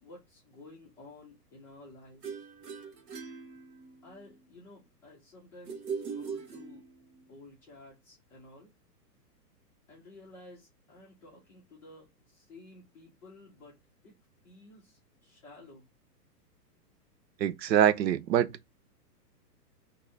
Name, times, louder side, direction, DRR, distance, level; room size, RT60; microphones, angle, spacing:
voice 1, 0.0-2.5 4.0-6.8 7.3-8.7 9.9-13.8 14.0-14.1 14.4-15.8, left 2 dB, 5° left, 0.4 m, -53 dB
sound 1, 2.2-4.2 5.7-7.2, right 6 dB, 70° right, 1.3 m, -40 dB
voice 2, 17.4-18.6, right 10 dB, 85° right, 0.6 m, -24 dB
3.9 x 2.6 x 2.7 m
hypercardioid pair, 140°, 49 cm